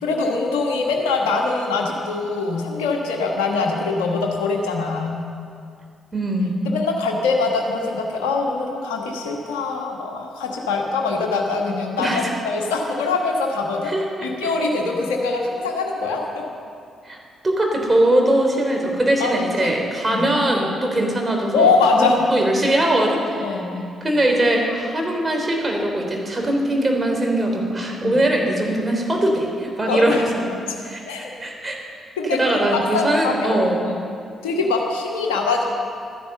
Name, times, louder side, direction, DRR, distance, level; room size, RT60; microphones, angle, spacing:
voice 1, 0.0-5.2 6.6-13.9 14.2-16.4 19.2-19.3 19.6-19.7 20.1-20.3 21.5-22.2 23.4-23.9 28.0-28.2 29.8-30.2 31.0-31.3 32.2-33.6 33.8-33.9 34.4-35.6, left 4 dB, 75° left, 0 dB, 1.3 m, -23 dB
voice 2, 6.1-6.6 12.0-12.3 13.8-14.5 17.0-17.2 17.4-23.6 24.0-30.2 30.8-31.8 32.2-33.8, right 1 dB, 25° right, 1 dB, 3.4 m, -21 dB
13.0 x 10.0 x 6.8 m, 2.4 s
hypercardioid pair, 40°, 0 cm